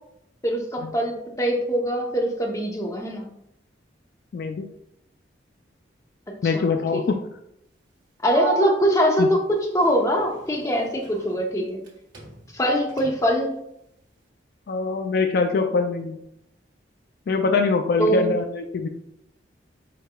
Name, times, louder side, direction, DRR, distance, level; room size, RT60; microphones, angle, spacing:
voice 1, 0.4-3.2 6.4-6.7 6.9-7.0 8.2-11.8 12.5-13.6 18.0-18.3, equal, 15° left, 1 dB, 0.7 m, -23 dB
voice 2, 4.3-4.7 6.4-7.0 9.2-9.3 14.7-16.2 17.3-18.9, left 4 dB, 55° left, 6 dB, 0.3 m, -23 dB
Sliding door, 8.3-11.9 12.1-13.5, right 4 dB, 75° right, 1.5 m, -36 dB
4.7 x 4.4 x 2.2 m, 0.77 s
head